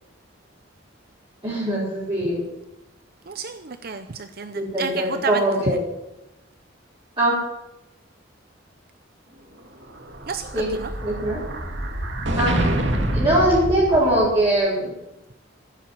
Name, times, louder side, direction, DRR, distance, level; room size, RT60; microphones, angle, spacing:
voice 1, 1.4-2.4 4.6-5.8 7.2-7.4 10.5-10.7 11.0-11.4 12.4-12.6 13.1-14.9, right 1 dB, 25° right, -10 dB, 5.3 m, -21 dB
voice 2, 3.3-5.8 10.3-10.9, right 5 dB, 50° right, 9 dB, 0.7 m, -31 dB
Explosion, 9.8-14.5, right 1 dB, 70° right, 2.2 m, -26 dB
14.0 x 7.9 x 9.5 m, 0.94 s
head